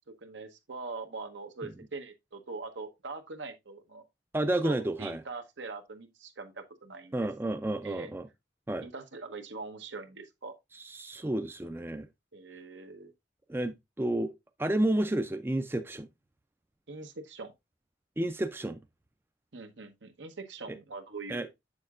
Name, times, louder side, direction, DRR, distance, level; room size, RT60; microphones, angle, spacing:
voice 1, 0.2-4.0 4.6-7.3 7.8-8.1 8.8-10.5 12.3-13.1 16.9-17.5 19.5-21.5, right 3 dB, 85° right, 1.0 m, -42 dB
voice 2, 4.3-5.2 7.1-8.3 8.7-8.9 10.8-12.1 13.5-14.3 14.6-16.1 18.2-18.8 20.7-20.8 21.3-21.5, right 1 dB, 10° right, 0.4 m, -30 dB
7.3 x 6.5 x 2.4 m
head